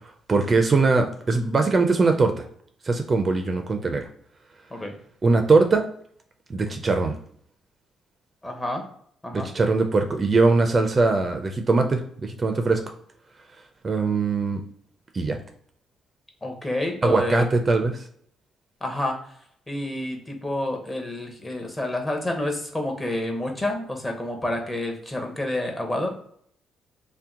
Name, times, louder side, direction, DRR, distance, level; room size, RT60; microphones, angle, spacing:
voice 1, 0.3-2.4 2.8-4.1 5.2-5.8 6.5-7.2 9.5-12.8 13.8-14.6 15.1-15.4 17.0-18.0, right 3 dB, 35° right, 5 dB, 0.4 m, -21 dB
voice 2, 8.4-8.8 9.2-9.5 16.4-17.5 18.8-19.4 19.7-26.1, left 1 dB, 20° left, 3 dB, 0.8 m, -29 dB
2.8 x 2.1 x 3.5 m, 0.64 s
cardioid pair, 90°, 0 cm